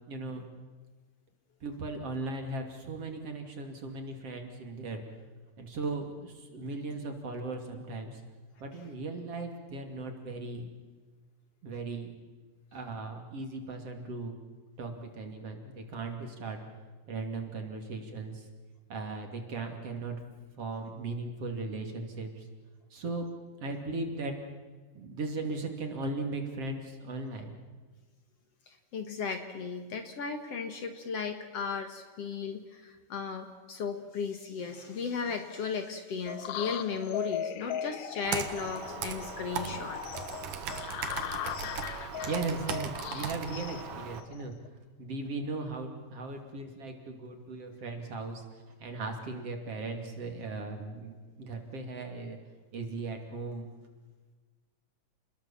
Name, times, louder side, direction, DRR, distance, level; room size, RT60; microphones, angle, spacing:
voice 1, 0.1-0.5 1.6-5.0 5.6-8.2 8.6-10.7 11.6-12.1 12.7-14.4 14.8-16.6 17.1-18.5 18.9-20.2 20.6-22.5 22.9-23.3 23.6-24.4 25.0-27.5 42.3-44.5 45.0-52.4 52.7-53.7, right 3 dB, 50° right, 4 dB, 3.5 m, -37 dB
voice 2, 28.7-40.0, left 5 dB, 55° left, 6 dB, 2.4 m, -36 dB
sound 1, 36.3-44.7, left 10 dB, 70° left, 2.0 m, -39 dB
Computer keyboard, 38.2-44.2, right 8 dB, 75° right, 3.0 m, -38 dB
29.5 x 21.0 x 7.3 m, 1.4 s
omnidirectional pair, 3.7 m